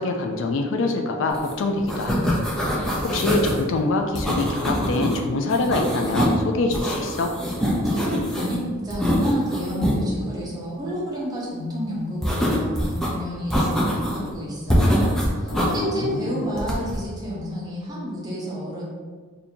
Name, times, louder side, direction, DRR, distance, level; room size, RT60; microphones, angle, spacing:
voice 1, 0.0-2.4 2.7-7.3 15.5-16.4, left 3 dB, 60° left, 4 dB, 0.3 m, -25 dB
sound 1, 1.3-1.5 1.8-3.6 4.2-5.2 5.5-6.4 6.7-8.6 8.9-10.0 12.2-13.1 13.5-14.3 14.7-15.7 16.6-17.0, equal, 5° left, 0.5 m, -23 dB
voice 2, 7.8-18.8, equal, 20° right, -6 dB, 0.8 m, -30 dB
2.7 x 2.7 x 4.2 m, 1.5 s
head